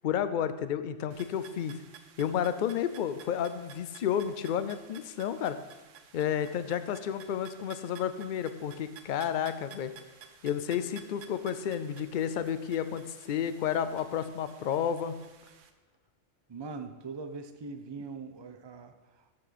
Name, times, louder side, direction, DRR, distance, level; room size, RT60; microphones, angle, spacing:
voice 1, 0.0-1.7 2.2-5.6 6.1-9.9 10.4-15.1, left 9 dB, 60° left, 12 dB, 0.5 m, -31 dB
sound 1, 1.1-15.7, right 7 dB, 75° right, 1.1 m, -53 dB
voice 2, 16.5-19.3, right 4 dB, 35° right, 7 dB, 0.4 m, -42 dB
7.5 x 6.1 x 6.7 m, 1.2 s
omnidirectional pair, 1.3 m